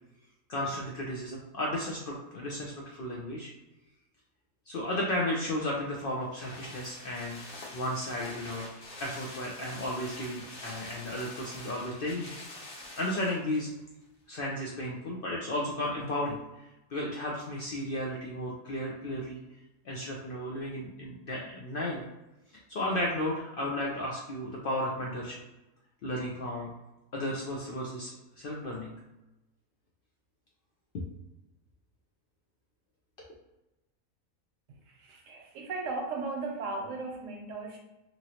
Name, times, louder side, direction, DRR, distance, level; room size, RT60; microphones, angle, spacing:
voice 1, 0.5-3.5 4.7-8.7 9.0-12.3 13.0-13.7 14.3-16.4 16.9-19.4 19.8-22.0 22.7-25.4 26.0-26.7 27.1-28.9 30.9-31.0 33.2-33.3, left 1 dB, 80° left, -3 dB, 0.5 m, -34 dB
sound 1, 5.5-13.7 14.0-14.1, left 2 dB, 50° left, 0.8 m, -46 dB
voice 2, 34.7-37.8, right 3 dB, 70° right, 1 dB, 0.9 m, -37 dB
3.0 x 2.6 x 2.8 m, 0.98 s
omnidirectional pair, 1.5 m